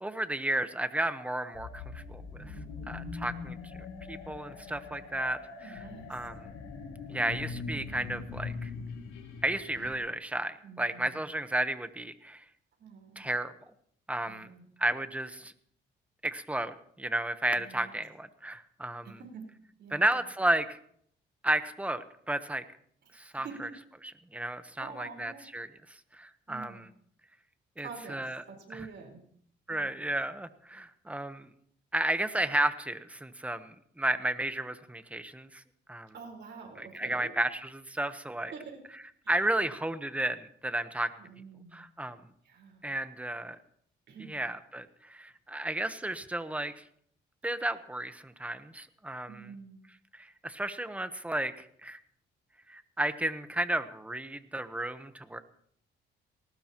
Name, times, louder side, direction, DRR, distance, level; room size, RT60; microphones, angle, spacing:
voice 1, 0.0-2.5 2.9-3.6 4.1-5.8 6.1-6.5 7.1-8.7 9.4-12.4 13.2-13.5 14.1-14.5 14.8-15.5 16.2-19.2 19.9-20.8 21.4-22.6 23.1-23.7 24.3-25.7 26.1-26.9 27.8-28.4 28.7-28.9 29.7-31.5 31.9-35.6 35.9-36.1 36.8-38.5 39.3-41.1 41.7-42.2 42.8-43.6 44.3-46.8 47.4-49.5 50.1-52.0 52.7-55.4, right 1 dB, 5° right, 10 dB, 1.1 m, -33 dB
sound 1, 1.5-10.0, left 4 dB, 90° left, 3.5 m, -42 dB
voice 2, 2.4-3.0 5.6-6.1 10.6-11.3 12.8-13.3 14.2-14.6 17.5-18.0 19.0-19.5 19.8-20.2 23.1-23.8 24.8-25.5 26.5-26.9 27.8-29.2 29.7-30.0 36.1-37.3 38.5-38.8 39.2-39.4 41.2-41.9 42.4-42.8 44.1-44.4 49.3-49.8, right 5 dB, 60° right, 1 dB, 4.5 m, -47 dB
19.5 x 18.5 x 3.0 m, 0.65 s
cardioid pair, 90°, 20 cm